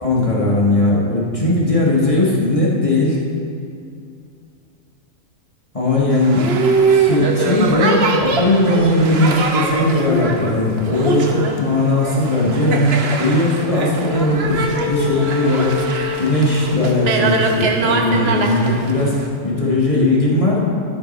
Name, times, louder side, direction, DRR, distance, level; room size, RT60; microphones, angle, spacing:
voice 1, 0.0-3.2 5.7-6.5 6.9-15.8 16.2-20.6, left 2 dB, 25° left, -5 dB, 1.4 m, -18 dB
Boat Water vehicle, 6.1-19.3, right 4 dB, 55° right, 1.0 m, -22 dB
Wind instrument woodwind instrument, 13.5-18.0, left 10 dB, 60° left, 0.5 m, -28 dB
13.0 x 5.4 x 4.2 m, 2.5 s
omnidirectional pair, 1.4 m